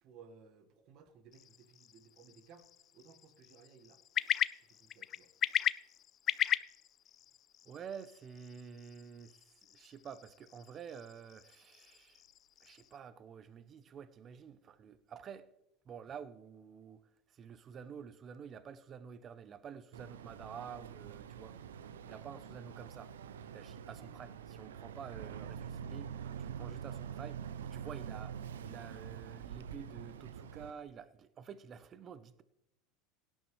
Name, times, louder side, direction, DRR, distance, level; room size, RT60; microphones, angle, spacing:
voice 1, 0.0-4.0 4.6-5.3 23.9-24.3, right 6 dB, 55° right, 1.7 m, -59 dB
sound 1, 1.3-13.0, left 11 dB, 40° left, 0.4 m, -39 dB
voice 2, 7.7-12.2 12.6-15.5 15.9-17.0 17.3-21.6 22.0-23.1 23.5-32.4, right 7 dB, 35° right, 0.7 m, -49 dB
Boat Water vehicle, 19.9-30.7, right 8 dB, 90° right, 0.6 m, -45 dB
16.5 x 10.5 x 3.2 m
hypercardioid pair, 100°, 0 cm